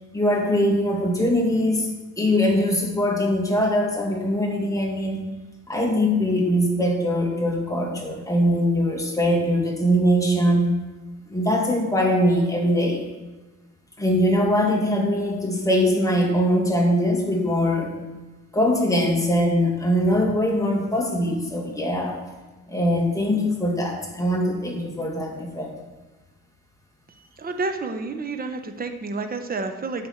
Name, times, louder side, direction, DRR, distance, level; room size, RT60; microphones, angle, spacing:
voice 1, 0.1-1.9 2.2-5.2 5.7-10.7 11.3-13.0 14.0-17.9 18.5-22.2 22.7-25.7, equal, 10° left, 0 dB, 2.4 m, -22 dB
voice 2, 27.4-30.1, right 3 dB, 30° right, 6 dB, 1.1 m, -29 dB
8.9 x 6.2 x 7.2 m, 1.2 s
cardioid pair, 90°, 30 cm